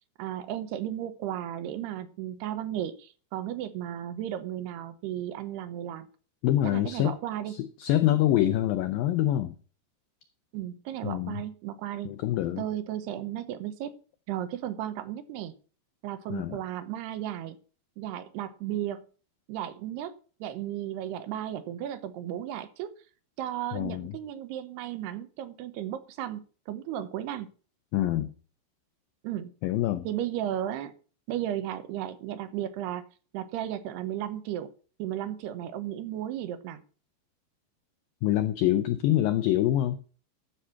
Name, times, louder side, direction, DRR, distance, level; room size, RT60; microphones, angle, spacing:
voice 1, 0.2-6.1 6.6-7.6 10.5-12.1 12.6-13.9 14.3-15.5 16.0-17.6 18.0-19.0 19.5-20.2 20.4-22.9 23.4-27.5 29.2-29.5 30.0-30.9 31.3-33.1 33.3-34.7 35.0-36.8, right 11 dB, 80° right, 12 dB, 2.8 m, -34 dB
voice 2, 6.4-7.2 7.5-9.6 11.0-11.4 12.1-12.6 16.3-16.6 23.7-24.1 27.9-28.3 29.6-30.1 38.2-40.0, left 13 dB, 85° left, 10 dB, 2.0 m, -25 dB
12.5 x 6.3 x 5.7 m, 0.39 s
omnidirectional pair, 4.9 m